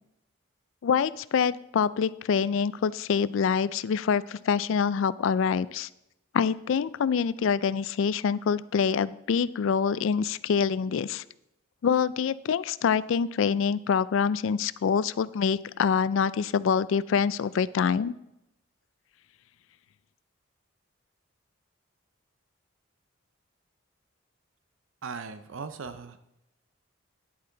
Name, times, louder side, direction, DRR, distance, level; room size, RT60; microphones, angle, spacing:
voice 1, 0.8-5.9 6.3-11.2 11.8-18.1, left 6 dB, 70° left, 18 dB, 0.3 m, -25 dB
voice 2, 25.0-26.2, right 5 dB, 70° right, 11 dB, 0.5 m, -38 dB
10.5 x 8.3 x 3.8 m, 0.85 s
head